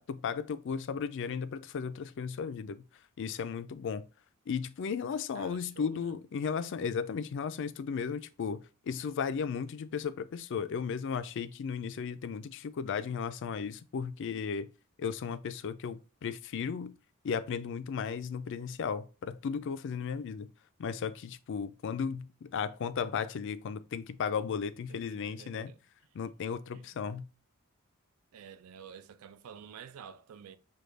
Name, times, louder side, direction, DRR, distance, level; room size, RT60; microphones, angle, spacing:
voice 1, 0.0-2.8 3.2-4.0 4.5-14.7 15.0-16.9 17.2-20.5 20.8-25.7 26.1-27.2, left 6 dB, 55° left, 0.4 m, -35 dB
voice 2, 5.3-6.1 24.9-25.8 26.7-26.9 28.3-30.6, right 7 dB, 75° right, 0.4 m, -50 dB
6.4 x 2.3 x 3.3 m
head